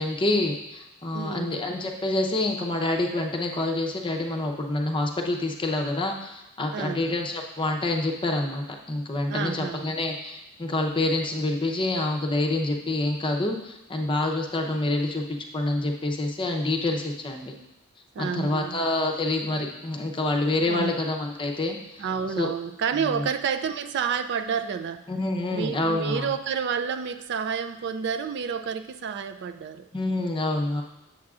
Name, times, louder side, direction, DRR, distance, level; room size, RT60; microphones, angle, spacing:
voice 1, 0.0-15.2 15.5-17.5 18.2-22.1 22.4-22.5 23.1-23.2 25.1-26.3 29.9-30.8, left 2 dB, 25° left, 2 dB, 0.7 m, -27 dB
voice 2, 1.1-1.5 6.7-7.1 9.3-9.9 18.1-18.8 20.7-21.0 22.0-25.0 25.5-29.8, right 6 dB, 50° right, 9 dB, 0.3 m, -29 dB
7.4 x 7.4 x 2.4 m, 0.91 s
head